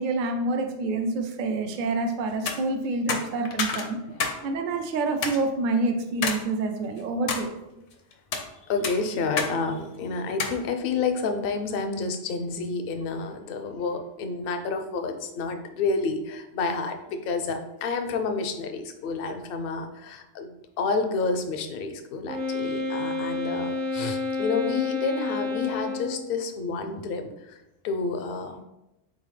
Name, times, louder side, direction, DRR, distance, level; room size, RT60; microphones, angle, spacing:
voice 1, 0.0-4.0 4.4-7.5, right 3 dB, 55° right, 5 dB, 0.5 m, -27 dB
sound 1, 2.3-2.6 3.1-4.4 4.7-4.8 5.2-5.4 6.2-6.4 6.9-7.4 8.1-8.5 8.8-9.5 9.8-9.9 10.4-10.6, left 5 dB, 75° left, 1.0 m, -28 dB
voice 2, 8.7-20.5 20.8-27.2 27.8-28.6, left 4 dB, 60° left, 6 dB, 0.6 m, -29 dB
Wind instrument woodwind instrument, 22.3-26.3, left 3 dB, 80° right, 1.1 m, -29 dB
4.0 x 3.7 x 3.2 m, 0.91 s
omnidirectional pair, 1.3 m